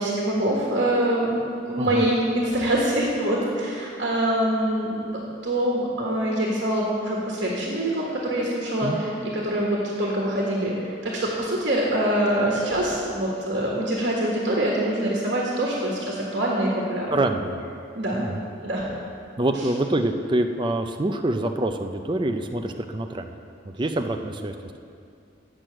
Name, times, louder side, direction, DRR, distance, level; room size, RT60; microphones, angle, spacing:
voice 1, 0.0-1.4 1.6-5.0 5.4-17.1 17.9-18.2 18.6-18.8, right 1 dB, 60° right, -4 dB, 1.5 m, -24 dB
voice 2, 17.1-17.6 18.1-18.4 19.4-23.3 23.6-24.5, right 1 dB, 25° right, 5 dB, 0.4 m, -26 dB
8.8 x 6.2 x 7.6 m, 2.4 s
head